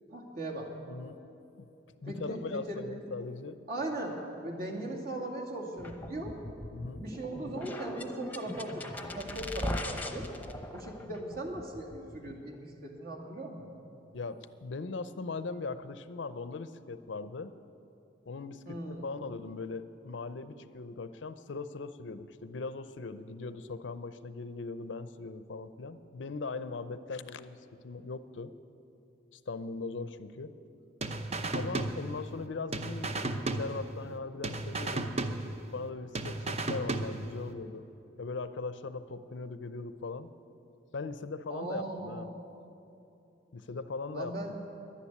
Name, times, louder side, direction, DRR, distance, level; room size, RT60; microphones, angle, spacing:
voice 1, 0.1-0.7 2.0-2.8 3.7-4.2 4.4-6.3 7.0-10.3 10.7-13.7 18.7-19.0 41.5-42.3 44.1-44.5, right 1 dB, 55° right, -1 dB, 2.3 m, -38 dB
voice 2, 0.9-1.2 1.6-1.7 2.0-3.6 6.7-7.0 14.1-17.5 18.3-28.5 29.3-30.5 31.5-35.1 35.7-37.9 38.2-40.3 40.9-42.3 43.5-44.6, left 3 dB, 85° left, 13 dB, 0.6 m, -39 dB
sound 1, 5.8-12.6, left 1 dB, 10° left, 0.8 m, -40 dB
sound 2, 31.0-32.4 32.7-34.2 34.4-35.9 36.1-37.5, right 2 dB, 35° right, 0.7 m, -34 dB
11.5 x 10.0 x 9.6 m, 2.8 s
head